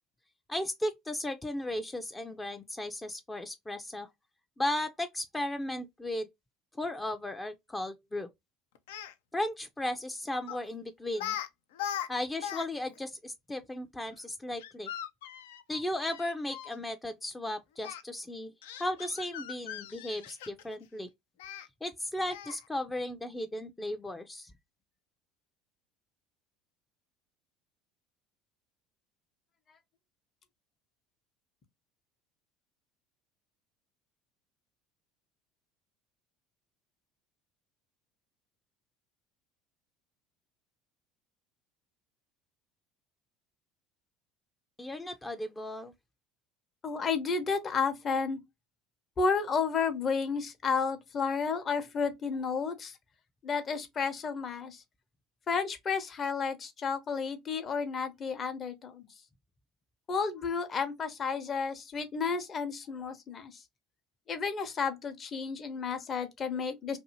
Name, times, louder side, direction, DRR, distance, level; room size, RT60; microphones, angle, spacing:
voice 1, 0.5-4.1 4.6-6.3 6.8-8.3 9.3-11.4 12.1-14.9 15.7-18.5 18.8-21.1 21.8-24.5 44.8-45.9, left 1 dB, 15° left, 0.4 m, -35 dB
Speech, 8.7-9.1 10.5-10.7 11.1-11.5 11.7-12.7 12.9-13.0 14.6-16.7 17.8-18.0 18.6-20.8 21.4-21.7 22.3-22.6, left 10 dB, 80° left, 0.4 m, -39 dB
voice 2, 46.8-48.4 49.2-53.0 53.4-54.8 55.5-59.1 60.1-63.6 64.3-67.0, left 5 dB, 40° left, 0.8 m, -32 dB
2.6 x 2.6 x 2.7 m
hypercardioid pair, 75°, 0 cm